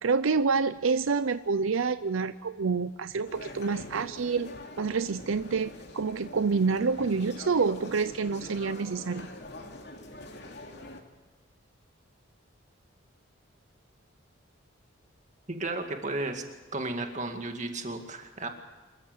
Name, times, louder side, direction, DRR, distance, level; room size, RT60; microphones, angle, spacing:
voice 1, 0.0-4.5 4.8-9.3, right 4 dB, 80° right, 13 dB, 0.6 m, -27 dB
sound 1, 3.3-11.0, left 2 dB, 55° left, 2.6 m, -44 dB
voice 2, 15.5-16.4 16.7-18.5, right 2 dB, 35° right, 5 dB, 2.2 m, -33 dB
26.5 x 14.0 x 7.9 m, 1.2 s
head